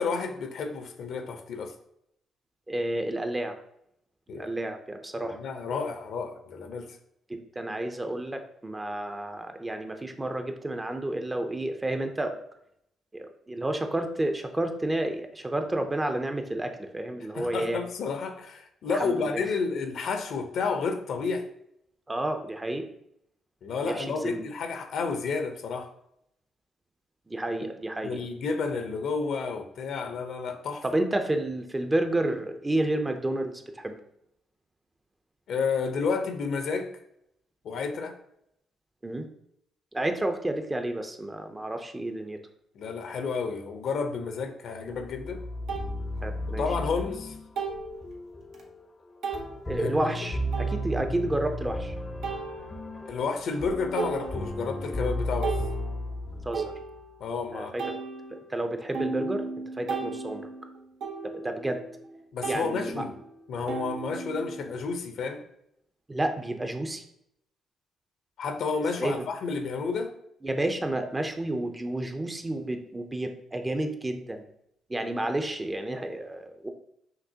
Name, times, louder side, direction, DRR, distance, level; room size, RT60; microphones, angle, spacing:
voice 1, 0.0-1.7 4.3-4.5 5.2-7.0 17.3-21.5 23.6-25.9 28.0-30.8 35.5-36.9 37.6-38.2 42.7-45.4 46.6-47.3 49.8-49.9 53.1-55.6 57.2-57.8 62.3-63.2 63.5-65.4 68.4-70.1, left 4 dB, 70° left, 6 dB, 0.7 m, -31 dB
voice 2, 2.7-3.6 4.3-5.4 7.3-12.3 13.1-17.8 18.9-19.4 22.1-22.9 23.8-24.4 27.3-28.2 30.9-34.0 39.0-39.2 39.9-42.4 46.2-46.6 49.7-51.9 56.4-56.7 57.5-58.0 58.5-59.4 59.7-60.5 61.2-61.8 62.5-63.0 66.1-67.0 68.8-69.2 70.4-74.5 74.9-76.7, right 1 dB, 15° right, 6 dB, 0.6 m, -30 dB
sound 1, 44.8-44.9 45.7-45.9 47.6-48.0 48.5-48.6 49.2-49.5 50.5-51.2 52.2-53.1 53.5-53.7 54.0-54.8 55.2-57.3 57.8-62.1 62.4-64.7, right 4 dB, 75° right, 0.8 m, -36 dB
sound 2, 45.0-57.0, left 1 dB, 25° left, 0.6 m, -34 dB
5.9 x 2.9 x 2.8 m, 0.75 s
cardioid pair, 90°, 0 cm